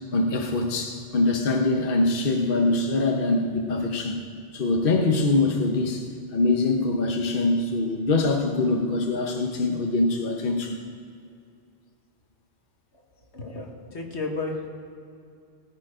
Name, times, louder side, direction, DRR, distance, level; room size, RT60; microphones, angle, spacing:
voice 1, 0.1-4.2 4.5-6.0 6.3-10.8, left 2 dB, 55° left, 2 dB, 1.2 m, -23 dB
voice 2, 13.3-14.7, left 3 dB, 80° left, 1 dB, 1.9 m, -32 dB
18.5 x 8.9 x 5.0 m, 2.4 s
omnidirectional pair, 1.1 m